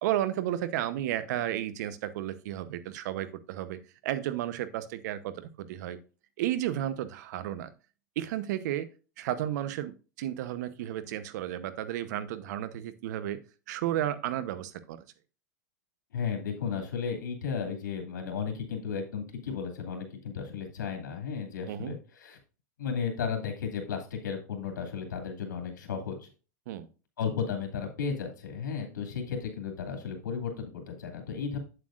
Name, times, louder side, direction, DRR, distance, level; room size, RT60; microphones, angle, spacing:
voice 1, 0.0-6.0 6.4-7.7 8.2-8.9 9.2-13.4 13.7-15.0 21.7-22.0 26.7-26.9, right 12 dB, 70° right, 14 dB, 0.9 m, -33 dB
voice 2, 16.1-22.4 22.8-26.3 27.2-31.6, left 6 dB, 90° left, 3 dB, 2.5 m, -34 dB
8.3 x 7.7 x 2.5 m, 0.34 s
hypercardioid pair, 120°, 10 cm